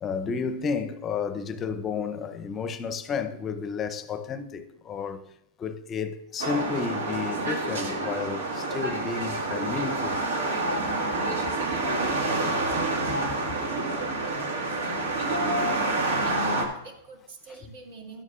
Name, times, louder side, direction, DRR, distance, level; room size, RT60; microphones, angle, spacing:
voice 1, 0.0-5.3 5.6-10.2 11.4-11.5 12.6-12.8 13.2-13.6 15.5-15.8 16.6-16.7 17.5-17.7, left 5 dB, 20° left, 0.6 m, -32 dB
sound 1, 6.4-16.6, right 2 dB, 85° right, 1.7 m, -28 dB
voice 2, 16.0-18.2, right 3 dB, 65° right, 2.0 m, -45 dB
12.5 x 9.2 x 2.4 m
supercardioid pair, 145°, 0 cm